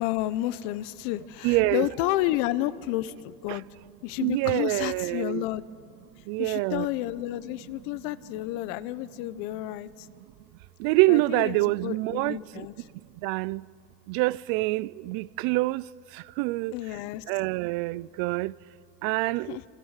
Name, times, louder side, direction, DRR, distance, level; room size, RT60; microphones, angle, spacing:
voice 1, 0.0-3.6 4.0-5.6 6.4-10.1 11.1-12.9 16.7-17.2 19.4-19.6, left 15 dB, 75° left, 1.0 m, -31 dB
voice 2, 1.4-1.9 4.2-5.4 6.3-6.9 10.8-12.4 13.2-13.6 14.1-15.8 16.4-16.7 17.3-18.5 19.0-19.4, right 21 dB, 70° right, 0.5 m, -25 dB
29.0 x 25.5 x 6.6 m
cardioid pair, 155°, 37 cm